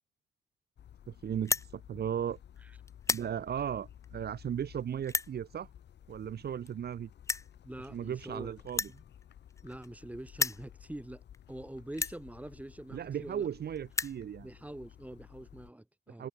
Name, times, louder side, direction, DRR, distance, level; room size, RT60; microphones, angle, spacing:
sound 1, 0.8-15.7, left 10 dB, 60° left, 1.7 m, -54 dB
voice 1, 1.1-2.4 3.1-5.7 6.1-7.1 7.9-8.9 12.9-14.5 16.1-16.3, right 9 dB, 55° right, 1.4 m, -36 dB
sound 2, 1.4-1.7 2.4-2.6 2.9-3.3 4.0-4.1 5.0-5.3 6.4-6.5 6.7-6.8 7.2-7.5 8.7-10.0 10.3-10.6 11.3-11.4 11.9-12.2 13.1-13.2 13.4-13.5 13.8-14.2, left 3 dB, 15° left, 0.4 m, -33 dB
voice 2, 7.6-8.5 8.9-9.0 9.6-11.2 11.5-13.5 14.4-16.3, right 1 dB, 5° right, 3.7 m, -45 dB
cardioid pair, 90°, 20 cm